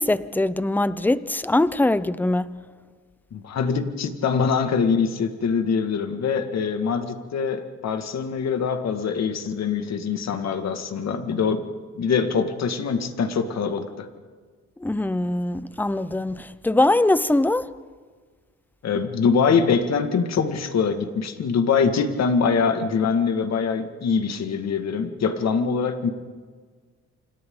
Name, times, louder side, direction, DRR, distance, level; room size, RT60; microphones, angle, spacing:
voice 1, 0.0-2.5 14.8-17.7, left 2 dB, 5° left, 0.7 m, -22 dB
voice 2, 3.3-11.6 12.0-14.1 18.8-26.1, left 5 dB, 60° left, 2.1 m, -23 dB
28.5 x 27.0 x 3.9 m
cardioid pair, 90°, 30 cm